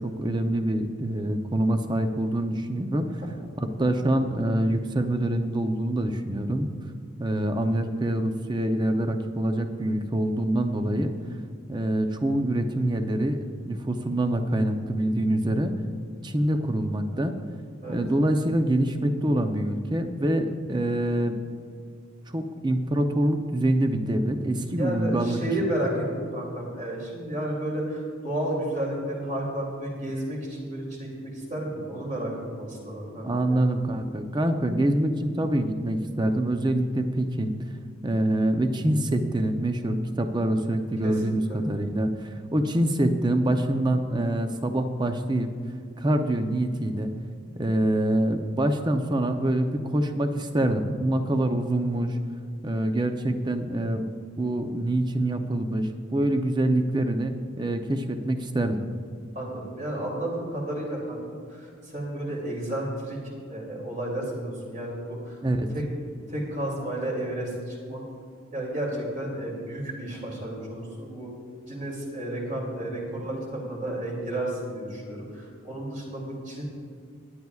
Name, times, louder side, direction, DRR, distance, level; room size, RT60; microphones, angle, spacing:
voice 1, 0.0-3.1 3.6-6.7 7.2-11.1 11.7-15.7 16.2-17.4 17.9-21.4 22.3-25.4 33.2-37.5 38.0-45.5 46.0-47.1 47.5-52.2 52.6-54.1 54.4-58.8 65.4-65.7, right 1 dB, 20° right, 6 dB, 0.6 m, -25 dB
voice 2, 24.7-33.6 41.0-41.6 59.3-63.2 63.5-65.4 65.7-65.9 66.3-68.0 68.5-71.3 71.7-76.6, right 1 dB, 35° right, -3 dB, 2.6 m, -32 dB
21.0 x 9.5 x 2.4 m, 2.2 s
head